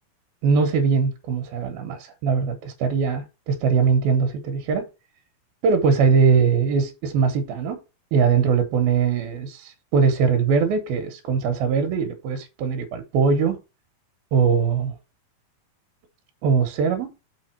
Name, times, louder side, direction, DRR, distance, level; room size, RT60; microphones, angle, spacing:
voice 1, 0.4-4.9 5.6-7.8 8.1-13.6 14.3-15.0 16.4-17.1, right 5 dB, 80° right, 3.1 m, -21 dB
6.5 x 5.7 x 4.4 m
omnidirectional pair, 4.2 m